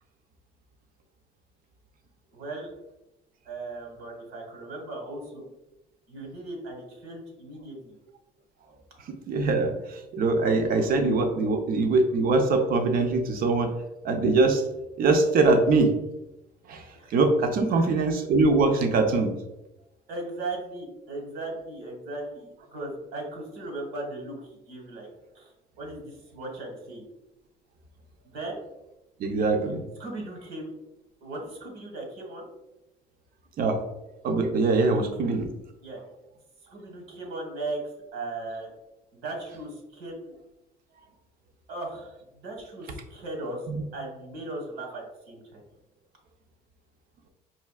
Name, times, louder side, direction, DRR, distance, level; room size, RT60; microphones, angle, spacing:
voice 1, 2.3-2.7 3.5-5.4 6.1-7.9 16.9-17.1 17.7-17.9 20.1-25.1 25.3-25.5 25.8-27.0 28.2-28.6 30.0-30.7 31.2-32.5 34.9-35.0 35.8-36.0 36.7-37.8 38.1-38.7 39.1-40.3 41.7-42.1 42.4-43.6 43.9-45.6, right 2 dB, 85° right, 0 dB, 1.2 m, -37 dB
voice 2, 9.3-9.7 10.1-13.7 14.0-14.6 15.0-15.9 16.7-16.8 17.1-19.3 29.2-29.8 33.6-33.8 34.2-35.5 43.7-43.8, right 3 dB, 60° right, 5 dB, 0.6 m, -22 dB
4.4 x 2.7 x 2.3 m, 0.94 s
cardioid pair, 110°, 17 cm